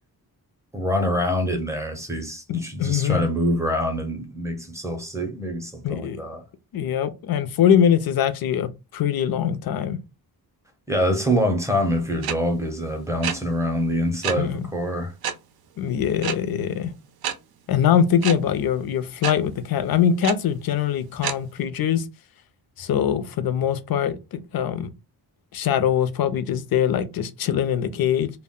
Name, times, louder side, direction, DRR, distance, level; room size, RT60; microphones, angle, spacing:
voice 1, 0.7-6.4 10.9-15.1, equal, 10° right, 0.5 m, -25 dB
voice 2, 2.5-3.2 5.8-6.2 6.7-10.0 14.4-14.7 15.8-16.9 17.7-22.1 22.8-24.9 25.5-28.3, left 9 dB, 70° left, 0.5 m, -23 dB
sound 1, 12.2-12.3 13.2-13.3 14.2-14.3 15.2-15.3 16.2-16.3 17.2-17.3 18.2-18.3 19.2-19.3 20.2-20.3 21.2-21.3, right 9 dB, 75° right, 0.5 m, -26 dB
2.1 x 2.0 x 3.5 m
wide cardioid pair, 160°, 38 cm